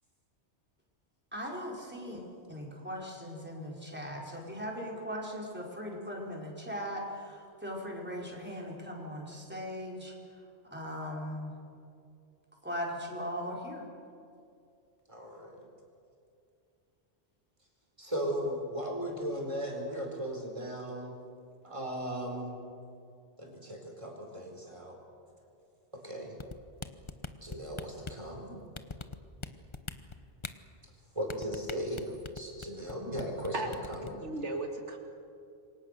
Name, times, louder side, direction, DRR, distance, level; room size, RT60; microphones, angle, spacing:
voice 1, 1.3-2.2 2.5-10.1 10.7-11.5 12.6-13.8, equal, 10° right, -3 dB, 4.7 m, -39 dB
voice 2, 15.1-15.7 18.0-21.1 21.6-22.5 23.4-25.0 26.0-26.4 27.4-28.6 31.1-32.0 32.3-34.1, equal, 25° right, 1 dB, 4.8 m, -37 dB
sound 1, 26.4-28.2 28.8-29.5 29.7-30.5 31.3-32.9 33.2-33.5 33.7-34.1, left 4 dB, 25° left, 0.9 m, -40 dB
voice 3, 34.2-35.0, right 2 dB, 80° right, 3 dB, 2.3 m, -35 dB
27.5 x 23.5 x 6.8 m, 2.5 s
omnidirectional pair, 1.2 m